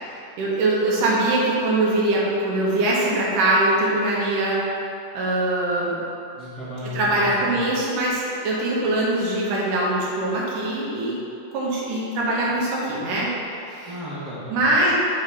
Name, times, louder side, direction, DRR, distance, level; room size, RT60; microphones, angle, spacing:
voice 1, 0.4-4.6 5.1-6.0 6.9-11.2 11.5-13.3 13.7-13.9 14.5-14.9, right 2 dB, 85° right, -5 dB, 2.9 m, -22 dB
voice 2, 6.3-7.6 13.8-14.7, left 1 dB, 40° right, -12 dB, 1.4 m, -34 dB
8.8 x 5.4 x 3.5 m, 2.7 s
omnidirectional pair, 3.7 m